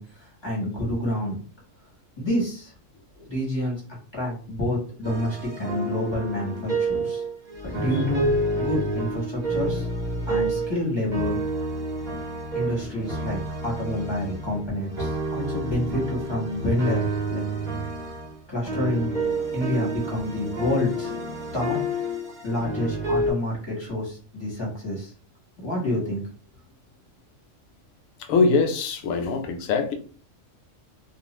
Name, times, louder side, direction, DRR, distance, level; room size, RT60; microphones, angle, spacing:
voice 1, 0.0-1.4 2.2-2.7 3.3-3.7 4.1-7.2 7.7-9.9 10.3-11.4 12.5-13.4 13.6-17.4 18.5-19.1 19.5-21.1 21.5-21.8 22.4-25.1 25.6-26.2, left 1 dB, 20° left, -6 dB, 1.2 m, -28 dB
sound 1, 5.0-10.8 11.1-23.3, right 1 dB, 40° right, 0.9 m, -29 dB
voice 2, 28.3-29.9, left 4 dB, 90° left, 5 dB, 1.0 m, -22 dB
2.5 x 2.4 x 2.9 m, 0.41 s
omnidirectional pair, 1.4 m